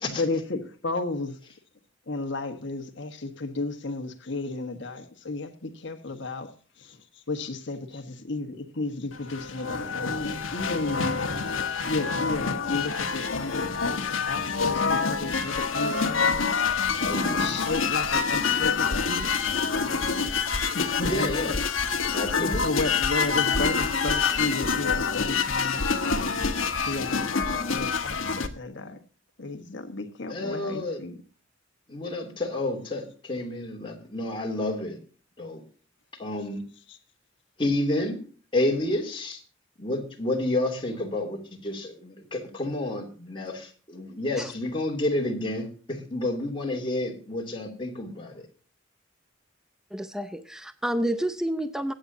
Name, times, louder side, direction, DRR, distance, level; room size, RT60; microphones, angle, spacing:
voice 1, 0.1-1.4 2.1-11.1 11.9-14.0 14.2-16.3 17.3-19.4 20.7-21.3 22.4-26.0 26.9-29.0 29.4-31.2 36.9-37.0, left 3 dB, 60° left, 1.5 m, -33 dB
sound 1, 9.1-28.5, left 5 dB, 85° left, 1.3 m, -26 dB
voice 2, 17.1-17.5 21.0-21.5 22.1-22.6 30.3-31.0 31.9-35.0 35.4-35.6 36.2-36.6 37.6-38.2 38.5-39.4 39.8-48.5, left 1 dB, 25° left, 2.9 m, -30 dB
voice 3, 49.9-51.9, right 1 dB, 5° right, 0.6 m, -29 dB
22.0 x 9.0 x 2.8 m
head